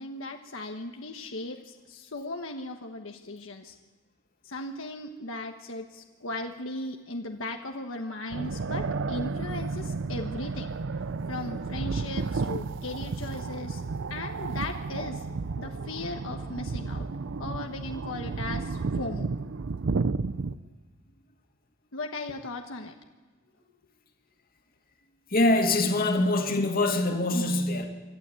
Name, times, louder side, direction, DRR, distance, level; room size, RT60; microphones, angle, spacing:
voice 1, 0.0-3.7 4.4-10.7 11.3-13.8 14.1-15.2 15.6-17.1 17.4-19.3 21.9-22.9, left 2 dB, 85° left, 1.3 m, -37 dB
sound 1, 8.3-20.6, right 4 dB, 70° right, 0.6 m, -32 dB
voice 2, 25.3-27.9, left 2 dB, 50° left, 2.4 m, -24 dB
26.0 x 12.5 x 8.4 m
head